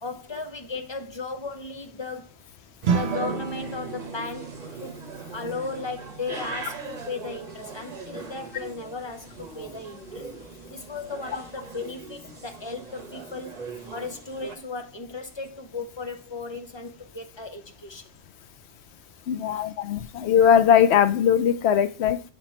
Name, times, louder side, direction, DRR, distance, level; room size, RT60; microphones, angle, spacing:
voice 1, 0.0-2.3 2.9-5.0 5.3-10.3 10.7-13.5 13.9-18.1 19.4-19.6, left 4 dB, 30° left, 0.6 m, -36 dB
sound 1, 2.8-14.6, right 5 dB, 45° right, 1.0 m, -40 dB
sound 2, 2.8-12.3, right 5 dB, 70° right, 0.8 m, -35 dB
voice 2, 19.3-22.2, left 8 dB, 90° left, 0.8 m, -20 dB
8.0 x 3.0 x 4.2 m
omnidirectional pair, 1.1 m